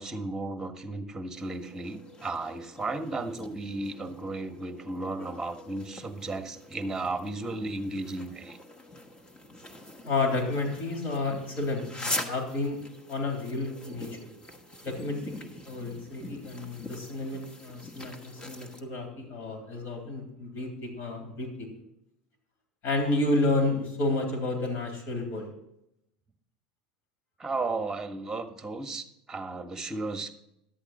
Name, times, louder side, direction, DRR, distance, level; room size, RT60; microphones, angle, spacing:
voice 1, 0.0-8.6 27.4-30.3, right 2 dB, 10° right, 7 dB, 1.5 m, -34 dB
sound 1, 1.4-18.8, left 1 dB, 25° left, 1.5 m, -43 dB
voice 2, 10.0-12.8 13.1-14.2 14.8-15.3 15.6-21.7 22.8-25.5, left 2 dB, 55° left, 3 dB, 3.4 m, -31 dB
11.5 x 8.1 x 4.2 m, 0.79 s
hypercardioid pair, 80°, 4 cm